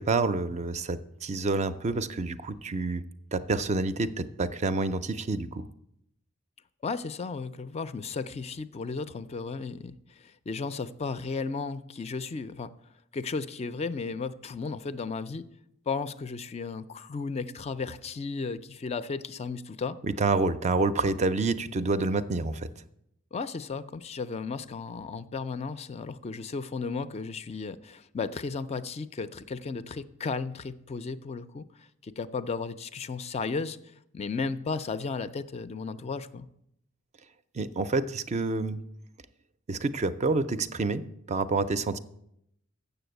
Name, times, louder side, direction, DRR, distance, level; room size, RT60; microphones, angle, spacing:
voice 1, 0.0-3.0 3.3-5.7 20.0-22.7 37.5-38.8 39.7-42.0, right 3 dB, 35° right, 13 dB, 0.4 m, -28 dB
voice 2, 6.8-12.7 13.1-15.4 15.9-20.0 23.3-33.8 34.1-36.5, left 4 dB, 30° left, 13 dB, 0.4 m, -34 dB
7.1 x 6.8 x 7.9 m, 0.77 s
head